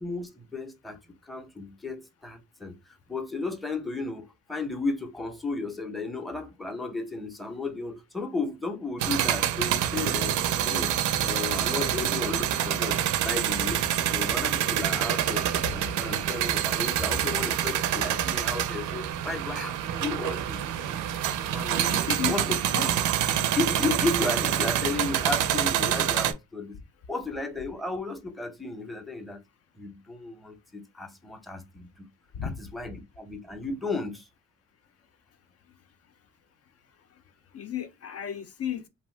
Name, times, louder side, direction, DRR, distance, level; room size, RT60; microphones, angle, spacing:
voice 1, 0.0-2.8 3.1-10.9 11.2-13.8 14.1-20.6 21.5-21.9 22.2-22.6 23.5-26.7 27.1-29.4 29.7-32.0 32.4-34.2, left 3 dB, ahead, 0.6 m, -34 dB
sound 1, 9.0-26.3, right 11 dB, 85° right, 0.5 m, -27 dB
voice 2, 21.9-22.4 22.7-22.9 23.2-23.5 32.3-32.6 37.5-38.9, left 8 dB, 50° left, 0.5 m, -34 dB
2.7 x 2.1 x 3.1 m
cardioid pair, 90°, 30 cm